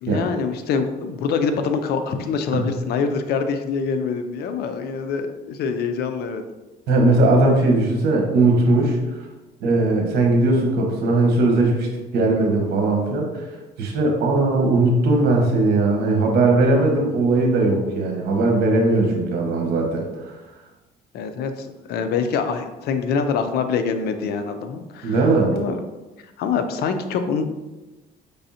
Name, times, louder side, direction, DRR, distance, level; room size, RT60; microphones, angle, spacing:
voice 1, 0.0-6.4 21.1-25.2 25.5-25.8 26.4-27.5, left 5 dB, 70° left, 8 dB, 0.5 m, -25 dB
voice 2, 6.9-9.0 9.6-11.9 12.1-13.4 13.8-20.3 25.0-25.6, right 2 dB, 75° right, 1 dB, 1.2 m, -19 dB
5.4 x 3.5 x 2.8 m, 1.1 s
cardioid pair, 110°, 17 cm